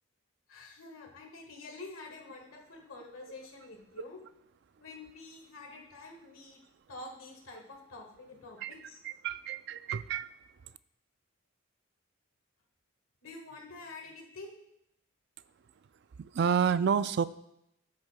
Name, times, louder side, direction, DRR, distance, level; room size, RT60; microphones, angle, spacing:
voice 1, 0.5-4.2 4.8-6.6 6.9-9.0 13.2-14.5, left 3 dB, 90° left, 1 dB, 1.6 m, -47 dB
voice 2, 9.0-10.4 16.2-17.3, right 7 dB, 55° right, 14 dB, 0.3 m, -29 dB
13.0 x 6.4 x 2.2 m, 0.79 s
head